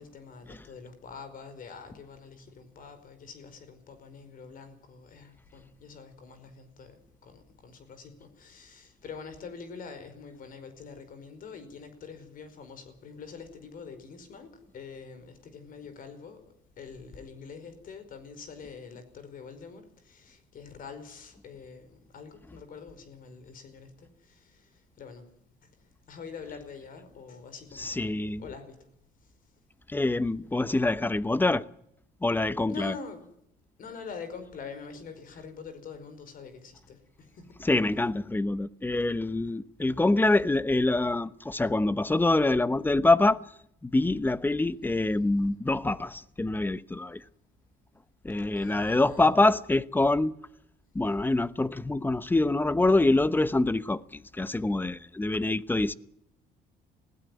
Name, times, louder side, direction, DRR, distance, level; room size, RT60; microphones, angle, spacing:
voice 1, 0.0-25.3 25.6-25.7 26.1-28.8 29.2-29.3 32.7-33.3 33.8-37.6 48.6-49.4, left 5 dB, 55° left, 5.1 m, -45 dB
voice 2, 27.7-28.5 29.9-31.6 32.2-33.0 37.6-43.4 43.8-47.2 48.2-50.3 50.9-55.9, left 2 dB, 10° left, 0.9 m, -25 dB
20.0 x 16.5 x 9.3 m
cardioid pair, 110°, 17 cm